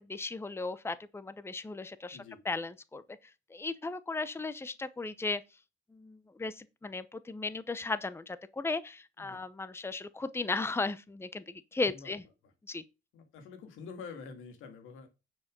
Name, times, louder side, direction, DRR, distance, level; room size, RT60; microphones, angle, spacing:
voice 1, 0.0-2.2 2.4-3.0 3.5-5.4 5.9-12.2 12.7-12.8, left 3 dB, 10° left, 0.8 m, -36 dB
voice 2, 2.1-2.4 9.2-9.4 11.9-12.2 13.1-15.1, left 5 dB, 90° left, 2.4 m, -47 dB
9.6 x 5.0 x 5.2 m
cardioid pair, 90°, 20 cm